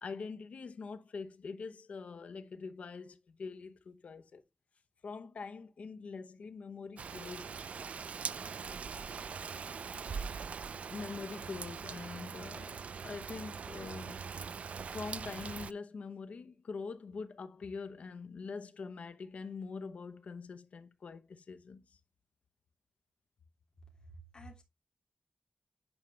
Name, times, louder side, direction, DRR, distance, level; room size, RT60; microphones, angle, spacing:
voice 1, 0.0-4.4 5.0-7.5 10.9-14.3 14.9-22.0, left 4 dB, 80° left, 0.8 m, -44 dB
Rain, 7.0-15.7, right 6 dB, 75° right, 0.4 m, -42 dB
voice 2, 24.0-24.6, right 1 dB, 40° left, 3.2 m, -51 dB
10.0 x 5.1 x 3.3 m
wide cardioid pair, 90°, 2 cm